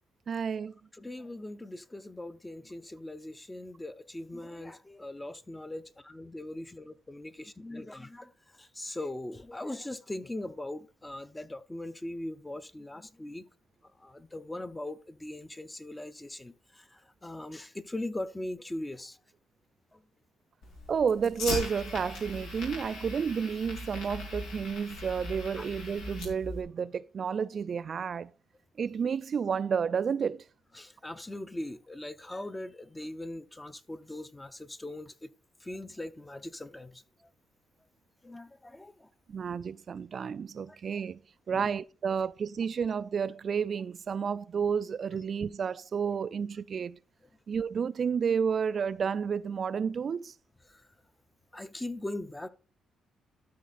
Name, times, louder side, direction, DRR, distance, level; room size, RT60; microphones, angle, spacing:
voice 1, 0.3-0.7 20.9-28.3 28.8-30.4 39.3-41.2 41.5-47.0 47.5-50.3, right 6 dB, 50° right, 0.3 m, -31 dB
voice 2, 0.9-13.4 14.0-19.2 19.9-20.0 25.6-25.7 30.7-35.3 35.6-37.0 38.2-39.1 40.7-40.8 41.5-41.7 50.7-50.9 51.5-52.5, left 1 dB, 15° left, 0.7 m, -40 dB
Fire, 20.6-26.6, left 3 dB, 90° left, 3.2 m, -39 dB
12.5 x 4.2 x 4.1 m
cardioid pair, 90°, 0 cm